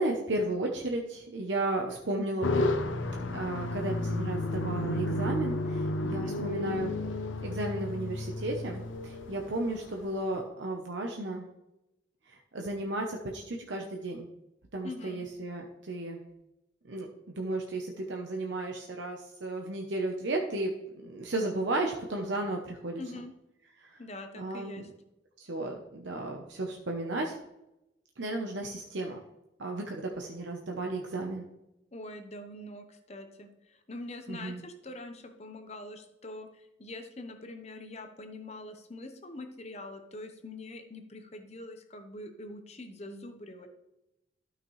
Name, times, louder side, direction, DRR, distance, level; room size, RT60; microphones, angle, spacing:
voice 1, 0.0-2.7 3.3-6.9 7.4-11.4 12.3-14.3 14.7-16.2 16.9-20.7 21.0-23.0 23.8-24.0 24.4-24.8 25.4-27.3 28.2-29.2 29.6-31.5 34.3-34.6, right 2 dB, 70° right, 1 dB, 0.9 m, -34 dB
sound 1, 2.4-10.2, left 2 dB, 85° left, 0.8 m, -32 dB
voice 2, 6.0-6.4 14.8-15.2 23.0-23.3 24.0-24.9 31.9-43.7, left 2 dB, 35° left, 6 dB, 0.9 m, -44 dB
12.5 x 5.9 x 3.2 m, 0.90 s
head